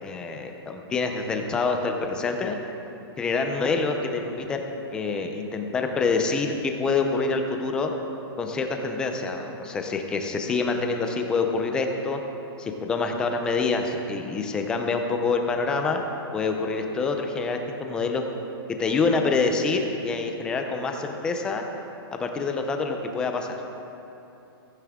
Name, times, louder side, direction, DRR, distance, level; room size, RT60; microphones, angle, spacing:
voice 1, 0.0-2.6 3.2-4.6 4.9-7.9 8.4-12.2 12.6-16.0 16.3-18.3 18.7-21.6 22.1-23.5, left 4 dB, 5° left, 4 dB, 0.5 m, -26 dB
16.0 x 15.0 x 3.6 m, 2.9 s
hypercardioid pair, 180°, 13 cm